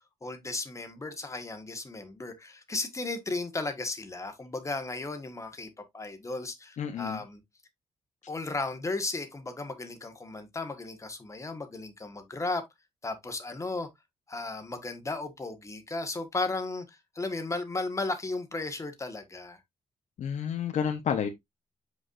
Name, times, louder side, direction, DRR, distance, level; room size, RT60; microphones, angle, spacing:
voice 1, 0.2-5.7 5.9-7.4 8.3-12.6 13.0-13.9 14.3-19.6, left 3 dB, 25° left, 1.5 m, -35 dB
voice 2, 6.8-7.2 20.2-21.3, left 8 dB, 70° left, 1.1 m, -30 dB
8.1 x 4.8 x 2.6 m
cardioid pair, 115°, 13 cm